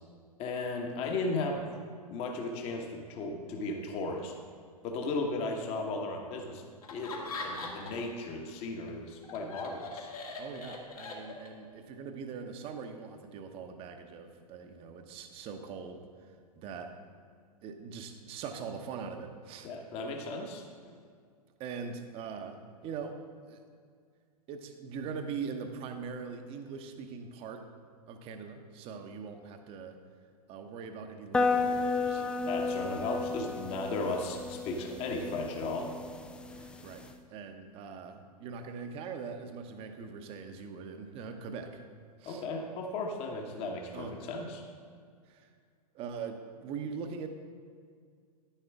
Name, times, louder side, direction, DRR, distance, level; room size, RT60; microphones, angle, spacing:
voice 1, 0.4-1.6 2.1-4.3 4.8-6.6 6.9-10.1 19.6-20.9 32.4-35.9 42.3-44.6, left 2 dB, 30° left, 2 dB, 1.2 m, -35 dB
Laughter, 6.8-8.1 8.5-11.7, left 3 dB, 65° left, 1.8 m, -41 dB
voice 2, 10.4-16.9 17.6-19.7 21.6-23.2 23.5-23.6 24.5-27.6 28.1-30.0 30.5-32.3 36.5-37.0 37.3-41.9 42.2-42.5 43.9-44.2 45.3-45.5 45.9-47.3, right 5 dB, 30° right, 6 dB, 0.9 m, -42 dB
sound 1, 31.3-37.1, left 4 dB, 5° left, 0.3 m, -33 dB
11.0 x 10.0 x 3.5 m, 2.1 s
figure-of-eight pair, 105°, 20 cm